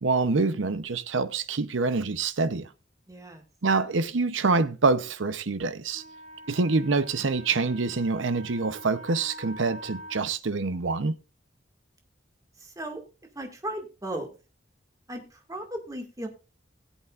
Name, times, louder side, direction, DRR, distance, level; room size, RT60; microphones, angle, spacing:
voice 1, 0.0-2.7 3.6-6.0 6.5-11.1, right 3 dB, 90° right, 0.8 m, -26 dB
voice 2, 3.1-3.4 12.6-13.0 13.4-14.3 15.1-16.3, right 1 dB, 20° right, 2.0 m, -36 dB
Wind instrument woodwind instrument, 5.9-10.3, right 1 dB, 40° right, 1.4 m, -45 dB
20.0 x 8.3 x 2.5 m
head